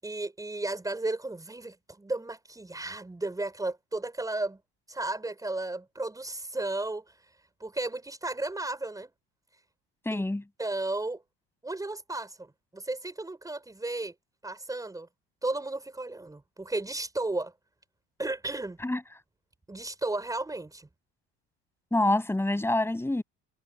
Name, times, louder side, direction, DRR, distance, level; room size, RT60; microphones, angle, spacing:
voice 1, 0.0-4.6 4.9-7.0 7.6-9.1 10.1-10.2 10.6-11.2 11.6-14.1 14.4-15.1 15.4-17.5 18.2-18.8 19.7-20.9, right 2 dB, 10° right, 5.9 m, -34 dB
voice 2, 10.0-10.4 18.8-19.0 21.9-23.2, left 2 dB, 5° left, 7.7 m, -26 dB
cardioid pair, 120°, 32 cm